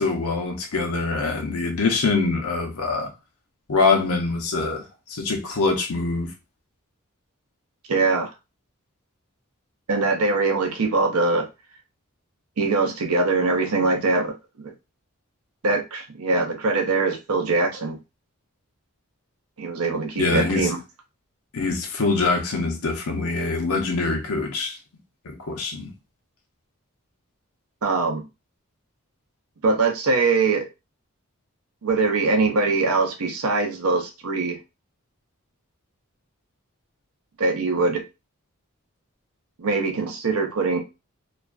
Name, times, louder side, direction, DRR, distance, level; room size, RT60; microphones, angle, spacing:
voice 1, 0.0-3.1 3.7-6.3 20.2-20.7 21.5-24.8 25.3-25.9, left 3 dB, 80° left, 0.6 m, -24 dB
voice 2, 7.9-8.3 9.9-11.4 12.6-14.7 15.6-18.0 19.6-20.8 27.8-28.2 29.6-30.6 31.8-34.6 37.4-38.0 39.6-40.8, right 3 dB, 80° right, 0.6 m, -22 dB
2.4 x 2.2 x 2.3 m
head